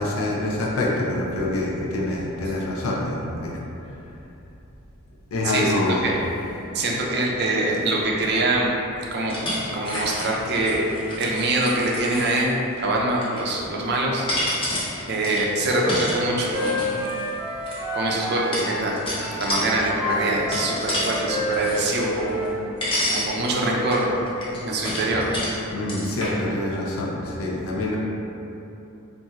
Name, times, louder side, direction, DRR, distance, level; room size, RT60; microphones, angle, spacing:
voice 1, 0.0-3.6 5.3-6.1 25.7-28.0, left 1 dB, 85° left, -3 dB, 0.5 m, -25 dB
voice 2, 5.4-6.2 6.7-8.7 9.1-9.4 9.7-10.9 11.2-14.3 15.1-16.9 17.9-19.0 19.3-22.4 23.1-24.1 24.6-25.2, right 2 dB, 50° right, -2 dB, 0.5 m, -24 dB
sound 1, 9.3-12.5 13.1-13.8 14.2-17.8 18.5-19.7 20.1-21.2 21.5-22.6 22.8-23.3 23.9-25.5 25.9-26.3, left 1 dB, 25° left, 0.7 m, -29 dB
Wind instrument woodwind instrument, 15.7-18.9 19.2-22.6, equal, 25° right, 1.1 m, -29 dB
4.1 x 2.6 x 2.4 m, 2.9 s
head